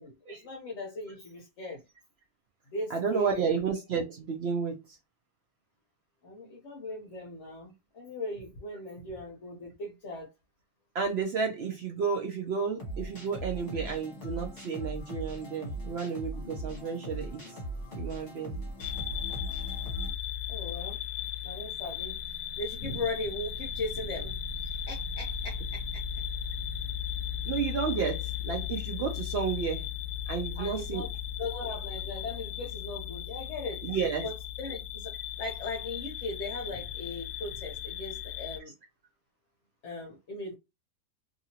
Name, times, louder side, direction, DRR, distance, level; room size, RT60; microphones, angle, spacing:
voice 1, 0.0-1.8 2.7-3.5 6.2-10.3 20.5-21.0 21.4-22.2 22.6-26.0 30.5-31.1 31.4-33.9 34.2-34.3 34.6-38.7 39.8-40.5, left 2 dB, 55° left, 0.9 m, -38 dB
voice 2, 2.9-5.0 6.4-6.5 10.9-17.6 17.9-18.6 27.5-29.9 30.3-31.0 31.5-31.6 33.8-34.3, right 6 dB, 90° right, 0.5 m, -32 dB
sound 1, 12.8-20.1, right 1 dB, 35° left, 1.2 m, -39 dB
sound 2, 18.8-38.6, left 8 dB, 75° left, 1.0 m, -36 dB
2.8 x 2.7 x 2.7 m
omnidirectional pair, 1.7 m